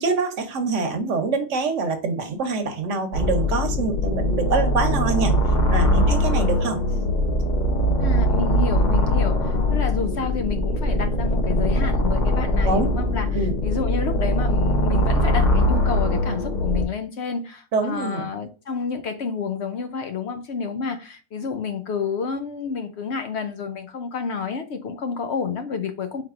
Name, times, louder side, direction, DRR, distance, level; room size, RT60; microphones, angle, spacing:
voice 1, 0.0-5.3 5.7-6.8 12.6-12.9 13.3-13.6 17.7-18.3, right 4 dB, 65° right, 1.1 m, -25 dB
sound 1, 3.1-16.8, left 1 dB, 40° left, 0.9 m, -21 dB
voice 2, 8.0-26.2, left 6 dB, 65° left, 0.8 m, -29 dB
4.5 x 3.7 x 2.4 m
omnidirectional pair, 1.4 m